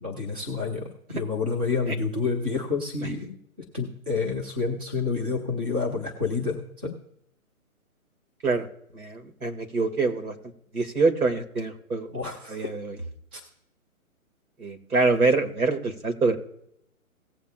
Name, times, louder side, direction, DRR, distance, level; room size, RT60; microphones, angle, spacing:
voice 1, 0.0-3.3 3.7-6.9 12.1-12.6 13.3-13.4, left 4 dB, 10° right, -1 dB, 0.5 m, -29 dB
voice 2, 8.9-10.4 10.7-12.1 12.5-13.0 14.6-16.4, right 3 dB, 80° right, 4 dB, 2.2 m, -25 dB
18.0 x 7.5 x 2.4 m, 0.75 s
hypercardioid pair, 145°, 43 cm